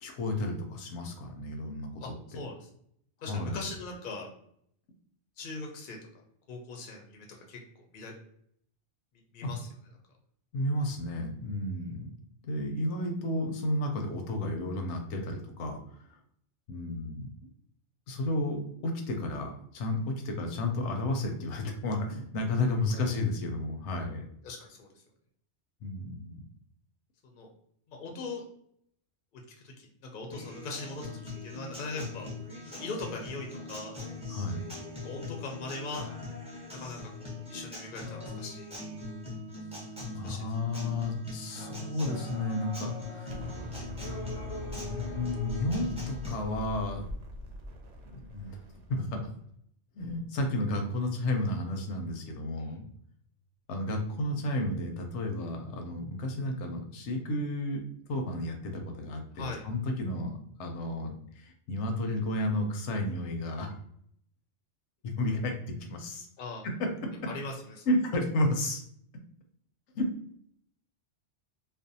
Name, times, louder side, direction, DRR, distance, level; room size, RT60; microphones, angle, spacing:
voice 1, 0.0-2.0 3.3-3.6 9.4-9.5 10.5-12.1 12.4-15.8 16.7-17.2 18.1-24.2 25.8-26.4 34.3-34.7 40.1-43.4 44.7-47.0 48.1-48.6 48.9-49.2 49.9-52.8 53.7-57.8 58.1-63.8 65.0-66.3 66.6-66.9 67.9-68.8 69.9-70.1, left 1 dB, 80° left, 3 dB, 0.9 m, -32 dB
voice 2, 2.0-2.6 3.2-4.3 5.4-6.0 6.5-7.6 7.9-8.1 9.3-9.7 24.4-24.9 27.2-27.5 27.9-28.4 29.6-32.3 32.7-33.9 35.0-36.1 36.7-38.7 40.2-40.5 52.6-52.8 59.3-59.6 66.4-66.6 67.3-67.8, left 3 dB, 60° left, 1 dB, 0.6 m, -40 dB
Acoustic guitar, 30.3-46.3, left 3 dB, 5° right, 0.6 m, -41 dB
Explosion, 43.3-49.3, equal, 70° right, 0.8 m, -42 dB
2.5 x 2.1 x 2.6 m, 0.68 s
omnidirectional pair, 1.2 m